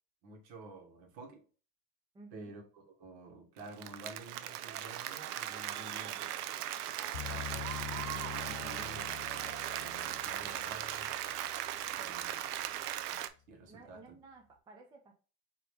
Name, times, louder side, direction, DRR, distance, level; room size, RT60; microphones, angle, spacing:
voice 1, 0.2-1.4 2.3-6.3 7.0-11.1 12.0-12.4 13.5-14.0, right 2 dB, 55° right, 4 dB, 1.6 m, -51 dB
voice 2, 2.1-2.5 12.0-12.5 13.7-15.1, right 3 dB, 10° right, 3 dB, 0.3 m, -55 dB
Applause, 3.6-13.3, right 12 dB, 85° right, 0.6 m, -38 dB
sound 1, 7.1-12.3, left 11 dB, 75° left, 0.8 m, -46 dB
4.8 x 3.0 x 3.3 m, 0.37 s
supercardioid pair, 130°, 45 cm